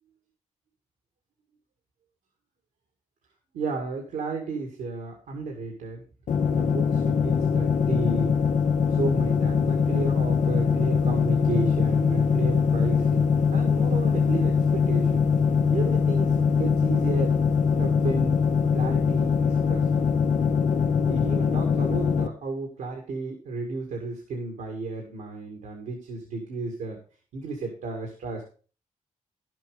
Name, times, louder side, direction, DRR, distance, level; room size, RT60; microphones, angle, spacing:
voice 1, 3.5-6.0 6.5-8.4 8.9-15.3 15.7-17.3 17.8-18.4 18.7-20.1 21.1-27.0 27.3-28.4, right 3 dB, 80° right, 2 dB, 2.0 m, -33 dB
sound 1, 6.3-22.3, left 6 dB, 65° left, 0.9 m, -22 dB
10.5 x 7.5 x 4.9 m, 0.38 s
supercardioid pair, 45°, 14 cm